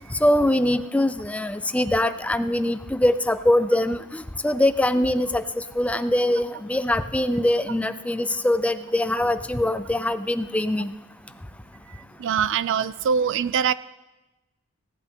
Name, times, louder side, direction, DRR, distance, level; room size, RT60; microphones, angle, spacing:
voice 1, 0.1-10.9, left 1 dB, 5° left, 12 dB, 0.4 m, -23 dB
voice 2, 12.2-13.7, right 7 dB, 60° right, 17 dB, 0.4 m, -23 dB
17.5 x 11.0 x 3.6 m, 1.0 s
head